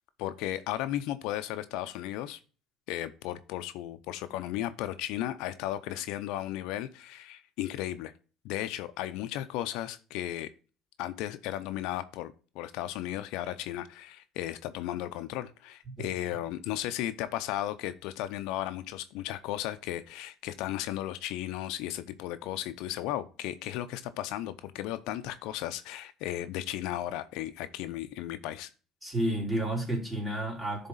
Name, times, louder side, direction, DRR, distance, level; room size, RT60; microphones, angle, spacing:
voice 1, 0.2-2.4 2.9-8.1 8.4-10.5 11.0-28.7, left 13 dB, 75° left, 0.5 m, -35 dB
voice 2, 29.0-30.9, right 1 dB, 10° right, 3.4 m, -31 dB
10.5 x 3.6 x 3.9 m
supercardioid pair, 90°, 0 cm